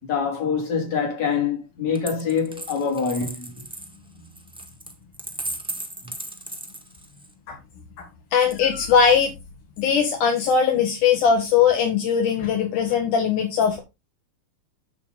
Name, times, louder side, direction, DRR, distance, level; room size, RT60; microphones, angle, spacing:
voice 1, 0.0-3.5, left 6 dB, 60° left, 4.5 m, -25 dB
Coin (dropping), 1.9-7.3 8.4-9.1, right 1 dB, 5° right, 1.0 m, -36 dB
voice 2, 8.3-9.3 9.8-13.8, left 7 dB, 80° left, 3.2 m, -20 dB
8.6 x 7.5 x 4.0 m
omnidirectional pair, 3.6 m